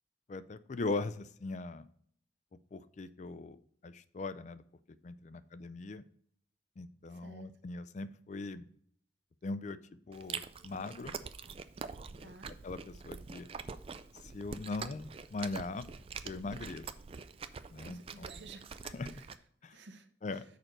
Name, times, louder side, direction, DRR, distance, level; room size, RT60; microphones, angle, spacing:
voice 1, 0.3-1.9 2.7-3.6 3.8-4.6 5.0-6.0 6.8-8.7 9.4-9.8 10.1-11.2 12.2-12.3 12.6-13.5 14.1-15.9 16.2-16.8 17.7-18.3 18.9-19.1 19.6-19.8 20.2-20.4, left 3 dB, 40° left, 13 dB, 0.4 m, -40 dB
voice 2, 7.1-7.5 12.2-12.6 17.8-19.3 19.7-20.4, right 3 dB, 75° right, 8 dB, 0.8 m, -54 dB
Chewing mastication, 10.1-19.4, right 5 dB, 30° right, 0.3 m, -45 dB
6.6 x 4.5 x 6.4 m, 0.62 s
head